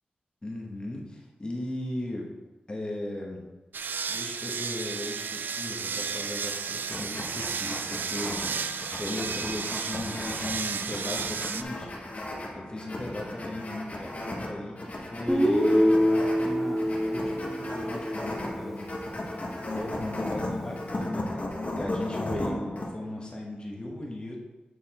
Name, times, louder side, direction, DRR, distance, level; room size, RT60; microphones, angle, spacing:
voice 1, 0.4-2.3 2.7-3.5 4.1-11.9 12.5-18.9 19.7-24.4, left 1 dB, 30° left, -1 dB, 1.4 m, -37 dB
sound 1, 3.7-11.6, right 6 dB, 85° right, 0.4 m, -33 dB
sound 2, 6.9-22.9, left 1 dB, 45° left, 1.3 m, -36 dB
Guitar, 15.3-19.2, equal, 5° right, 1.4 m, -25 dB
8.4 x 4.4 x 4.3 m, 1.2 s
wide cardioid pair, 90°, 3 cm